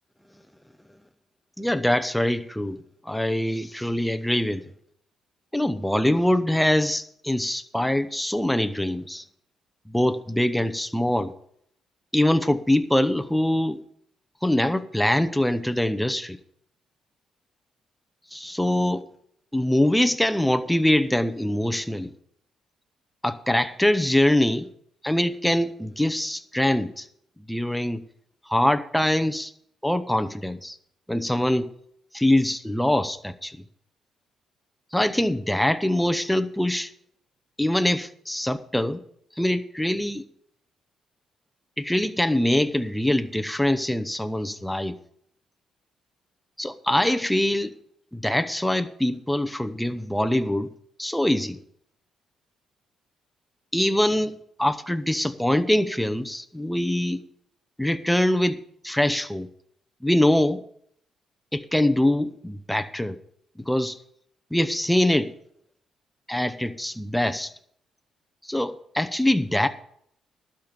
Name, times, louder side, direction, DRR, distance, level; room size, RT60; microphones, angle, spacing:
voice 1, 1.6-2.8 3.0-4.6 5.5-9.2 9.9-11.3 12.1-13.8 14.4-16.4 18.3-19.0 19.5-22.1 23.2-24.7 25.0-27.1 27.5-28.0 28.5-29.5 29.8-30.8 31.1-31.7 32.1-33.6 34.9-36.9 37.6-39.0 39.4-40.2 41.8-44.9 46.6-47.7 48.1-50.7 51.0-51.6 53.7-57.2 57.8-58.6 58.8-59.5 60.0-60.6 61.5-63.2 63.6-64.0 64.5-65.3 66.3-67.5 68.4-69.7, left 1 dB, 5° left, 10 dB, 0.8 m, -23 dB
12.0 x 5.2 x 8.9 m, 0.68 s
cardioid pair, 90°, 0 cm